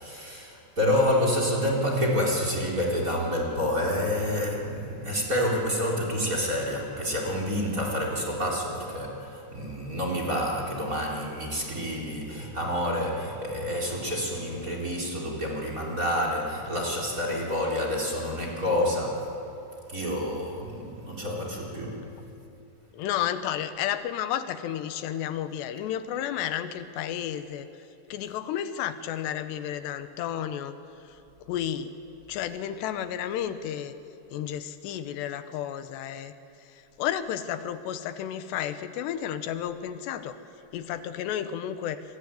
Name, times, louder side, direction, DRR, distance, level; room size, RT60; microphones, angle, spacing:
voice 1, 0.0-19.3 19.9-22.1, left 1 dB, 20° right, -1 dB, 4.1 m, -28 dB
voice 2, 22.9-27.7 28.1-30.8 31.1-31.2 31.5-31.9 32.3-33.9 34.3-36.3 36.7-40.4 40.7-42.0, left 10 dB, 85° left, 11 dB, 3.2 m, -32 dB
26.5 x 22.5 x 9.5 m, 2.8 s
omnidirectional pair, 4.8 m